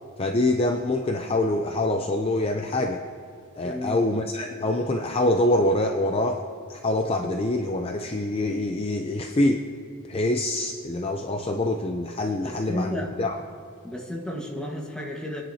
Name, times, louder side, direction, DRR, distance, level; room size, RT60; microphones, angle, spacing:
voice 1, 0.2-3.0 3.6-6.4 6.7-9.7 10.0-13.4, left 1 dB, 25° left, 4 dB, 0.5 m, -25 dB
voice 2, 3.6-4.0 12.4-13.1 13.8-15.4, equal, 5° left, -2 dB, 1.4 m, -32 dB
24.5 x 10.0 x 2.8 m, 2.3 s
head